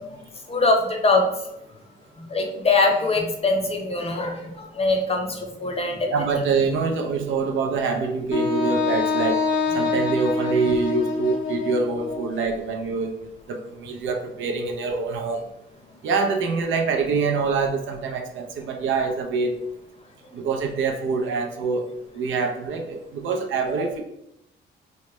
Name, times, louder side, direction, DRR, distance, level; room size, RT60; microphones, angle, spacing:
voice 1, 0.5-1.3 2.2-6.1, left 3 dB, 30° left, 2 dB, 0.7 m, -22 dB
voice 2, 6.1-9.4 9.7-13.1 13.5-15.5 16.0-19.6 20.3-21.9 22.1-24.0, right 4 dB, 75° right, 3 dB, 0.5 m, -25 dB
Wind instrument woodwind instrument, 8.3-12.3, left 4 dB, 70° left, 0.6 m, -25 dB
3.1 x 2.1 x 3.0 m, 0.79 s
cardioid pair, 90°, 20 cm